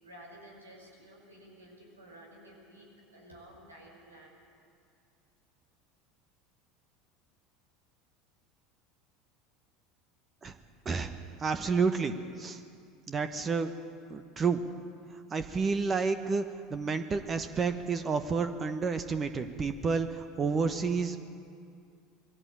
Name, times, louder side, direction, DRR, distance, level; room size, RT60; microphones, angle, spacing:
voice 1, 0.0-4.4, right 1 dB, 90° right, -1 dB, 5.4 m, -52 dB
voice 2, 11.4-12.6 13.1-13.7 14.1-14.6 15.3-16.4 16.7-21.2, right 5 dB, 30° right, 9 dB, 1.2 m, -30 dB
21.5 x 16.5 x 8.6 m, 2.3 s
figure-of-eight pair, 75°, 0 cm